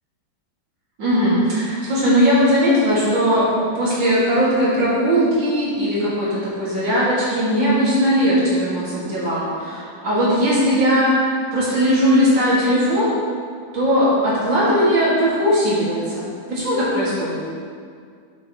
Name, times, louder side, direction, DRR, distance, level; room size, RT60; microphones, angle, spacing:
voice 1, 1.0-3.5 3.7-13.1 13.7-17.4, equal, 90° right, -9 dB, 3.0 m, -19 dB
11.5 x 7.6 x 3.1 m, 2.1 s
omnidirectional pair, 1.9 m